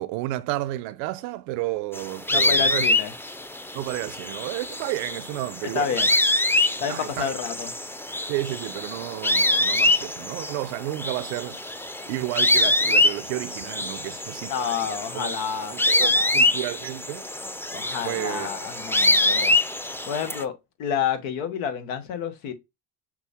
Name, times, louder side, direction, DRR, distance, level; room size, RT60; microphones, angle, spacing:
voice 1, 0.0-2.9 3.7-6.2 6.9-7.3 8.3-11.6 12.1-14.5 15.1-15.3 15.7-17.3 18.0-18.5, right 17 dB, 85° right, 0.5 m, -31 dB
sound 1, 1.9-20.4, left 1 dB, 5° left, 0.5 m, -25 dB
voice 2, 2.3-3.1 5.6-6.1 6.8-7.7 14.5-16.5 17.7-19.5 20.1-22.5, left 7 dB, 85° left, 1.0 m, -29 dB
5.9 x 2.3 x 3.4 m
hypercardioid pair, 55°, 44 cm